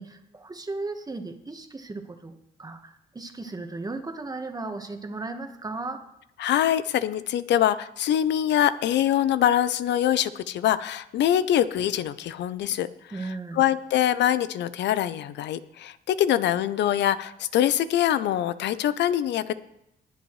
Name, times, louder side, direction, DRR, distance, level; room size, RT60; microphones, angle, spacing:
voice 1, 0.0-6.0 13.1-13.6, right 3 dB, 20° right, 6 dB, 1.3 m, -36 dB
voice 2, 6.4-12.9 13.6-19.5, left 11 dB, 90° left, 15 dB, 0.6 m, -24 dB
20.5 x 8.0 x 3.2 m, 0.80 s
cardioid pair, 90°, 18 cm